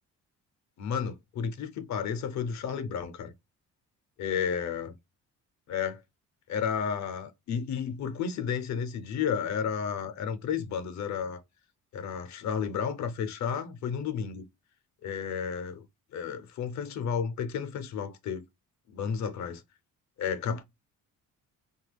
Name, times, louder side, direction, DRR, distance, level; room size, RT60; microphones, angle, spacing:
voice 1, 0.8-3.3 4.2-5.0 5.7-6.0 6.5-11.4 11.9-14.4 15.0-15.8 16.1-18.4 18.9-19.6 20.2-20.6, left 7 dB, 60° left, 0.6 m, -32 dB
2.8 x 2.3 x 3.3 m
cardioid pair, 115°, 32 cm